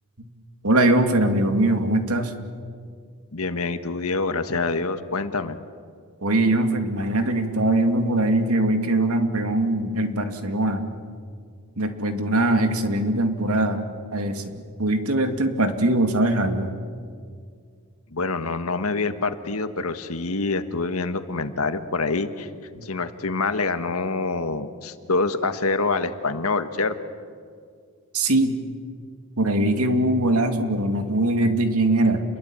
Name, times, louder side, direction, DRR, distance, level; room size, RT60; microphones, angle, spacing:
voice 1, 0.6-2.3 6.2-10.9 11.8-13.8 14.1-16.7 22.8-22.9 28.1-28.6 29.4-32.2, right 1 dB, 85° right, 6 dB, 2.5 m, -22 dB
voice 2, 3.3-5.6 18.1-22.5 22.8-26.9, left 3 dB, 85° left, 9 dB, 1.6 m, -26 dB
29.5 x 22.0 x 9.0 m, 2.1 s
head